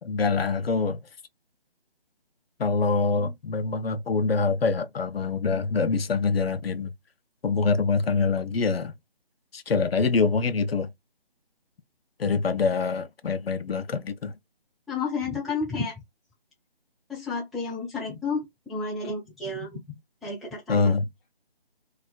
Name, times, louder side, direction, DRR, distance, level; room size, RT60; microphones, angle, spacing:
voice 1, 0.0-1.0 2.6-6.9 7.4-8.9 9.5-10.9 12.2-14.3 20.7-21.1, left 4 dB, 75° left, 0.5 m, -25 dB
voice 2, 14.9-16.0 17.1-20.0 20.2-20.8, left 4 dB, ahead, 0.3 m, -31 dB
2.4 x 2.3 x 2.2 m
figure-of-eight pair, 155°, 30 cm